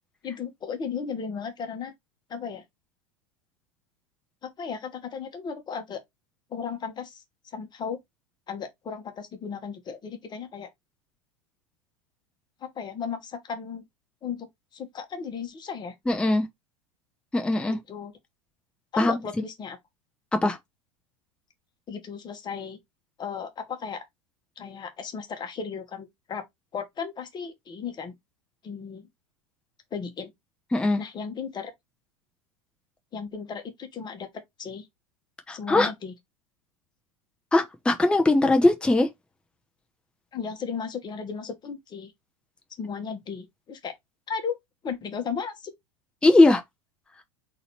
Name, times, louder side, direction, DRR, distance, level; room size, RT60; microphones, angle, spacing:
voice 1, 0.2-1.9 2.3-2.6 4.4-6.0 6.5-7.2 7.5-8.0 8.5-10.7 12.6-13.8 14.2-14.5 14.7-15.9 17.7-18.1 18.9-19.8 21.9-22.8 23.2-24.0 24.6-26.4 26.7-28.1 28.6-29.1 29.9-30.3 31.0-31.7 33.1-34.3 34.6-34.9 35.5-36.1 40.3-42.1 42.8-43.9 44.3-44.6 44.8-45.7, left 6 dB, 25° left, 1.3 m, -35 dB
voice 2, 16.1-16.5 17.3-17.8 19.0-19.2 20.3-20.6 30.7-31.0 35.5-35.9 37.5-39.1 46.2-46.6, left 2 dB, 5° left, 0.7 m, -20 dB
4.0 x 2.8 x 4.3 m
figure-of-eight pair, 85°, 17 cm